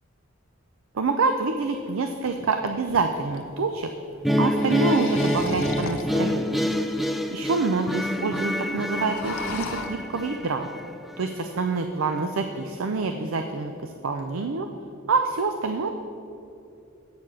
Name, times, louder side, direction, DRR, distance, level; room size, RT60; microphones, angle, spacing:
voice 1, 0.9-3.9 4.4-6.7 7.3-10.7 11.2-14.7 15.1-15.9, right 4 dB, 70° right, 6 dB, 0.5 m, -26 dB
sound 1, 1.6-1.7 2.3-3.5 4.3-6.3 6.9-7.0 7.2-7.3 7.5-8.0 8.3-8.4 8.7-9.9, left 3 dB, 80° left, 0.8 m, -36 dB
sound 2, 4.2-11.3, equal, ahead, 0.3 m, -27 dB
8.5 x 6.6 x 6.2 m, 2.8 s
head